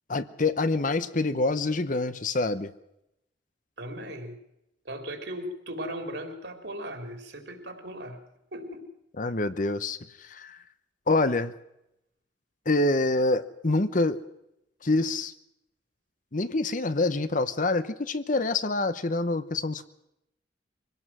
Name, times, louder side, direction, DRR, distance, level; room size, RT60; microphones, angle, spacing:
voice 1, 0.1-2.7 9.2-10.6 11.1-11.5 12.7-14.2 14.8-15.3 16.3-19.9, left 2 dB, 45° left, 12 dB, 0.9 m, -26 dB
voice 2, 3.8-4.4 4.9-8.2 8.5-8.8, equal, 70° right, 4 dB, 3.7 m, -37 dB
24.5 x 18.0 x 6.2 m, 0.82 s
head